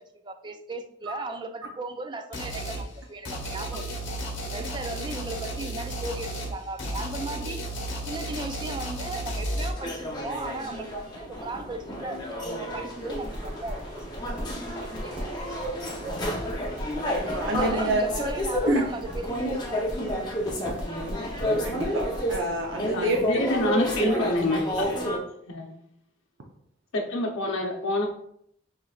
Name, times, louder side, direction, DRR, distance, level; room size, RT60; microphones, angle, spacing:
voice 1, 0.0-4.1 4.5-7.6 8.0-14.0 14.3-16.1 17.4-19.9, right 2 dB, 25° right, 7 dB, 0.3 m, -37 dB
sound 1, 2.3-2.9 3.2-9.7, right 1 dB, 65° left, 1.4 m, -33 dB
sound 2, 9.8-25.2, equal, 20° left, 0.8 m, -31 dB
sound 3, 13.0-22.4, equal, 5° right, 1.0 m, -38 dB
voice 2, 17.2-18.0 18.7-18.8 21.6-23.4 24.0-24.3, right 1 dB, 70° right, 1 dB, 0.7 m, -28 dB
voice 3, 22.9-24.6 25.5-25.8 26.9-28.1, left 1 dB, 85° left, 0 dB, 0.8 m, -27 dB
6.5 x 3.1 x 2.4 m, 0.70 s
head